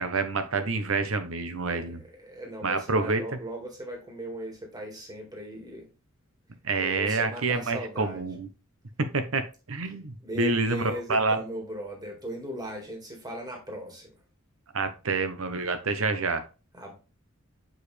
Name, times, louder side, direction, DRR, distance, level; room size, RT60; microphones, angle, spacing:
voice 1, 0.0-2.0 2.6-3.2 6.6-8.5 9.0-11.4 14.7-16.4, right 3 dB, 70° right, 9 dB, 0.9 m, -27 dB
voice 2, 1.7-5.9 6.8-8.2 10.2-14.2 16.7-16.9, right 1 dB, 20° right, 1 dB, 2.0 m, -38 dB
6.5 x 4.9 x 3.3 m, 0.32 s
head